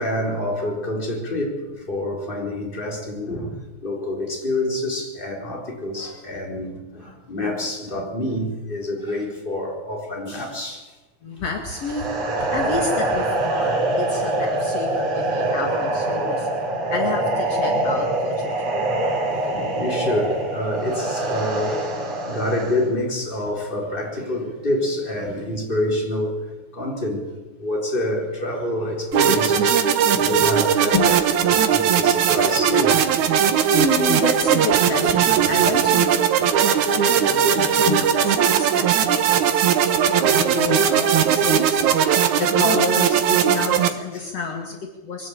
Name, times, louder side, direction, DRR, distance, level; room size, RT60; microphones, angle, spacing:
voice 1, 0.0-3.6 3.8-10.9 11.4-11.5 12.3-12.5 16.1-16.3 19.1-27.3 27.6-31.2 31.5-33.0 35.0-35.2 39.9-40.4 44.1-44.3, left 1 dB, 15° left, 1 dB, 4.2 m, -27 dB
voice 2, 11.2-12.2 12.5-16.5 16.9-18.7 30.9-31.2 33.7-42.0 42.4-45.3, left 5 dB, 60° left, 3 dB, 3.0 m, -29 dB
sound 1, 11.7-22.8, right 2 dB, 60° right, 4.2 m, -24 dB
sound 2, 29.1-43.9, right 8 dB, 80° right, 2.7 m, -19 dB
22.5 x 16.0 x 8.8 m, 1.1 s
omnidirectional pair, 3.3 m